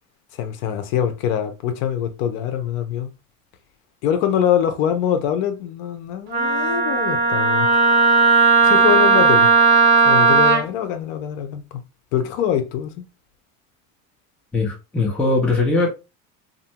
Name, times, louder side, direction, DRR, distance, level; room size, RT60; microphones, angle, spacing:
voice 1, 0.4-3.1 4.0-7.7 8.6-9.5 10.0-11.8 12.1-13.0, left 9 dB, 75° left, 0.7 m, -23 dB
Wind instrument woodwind instrument, 6.3-10.6, right 4 dB, 30° right, 0.7 m, -15 dB
voice 2, 14.5-15.9, left 3 dB, 5° left, 0.3 m, -20 dB
2.6 x 2.1 x 2.8 m
cardioid pair, 155°, 39 cm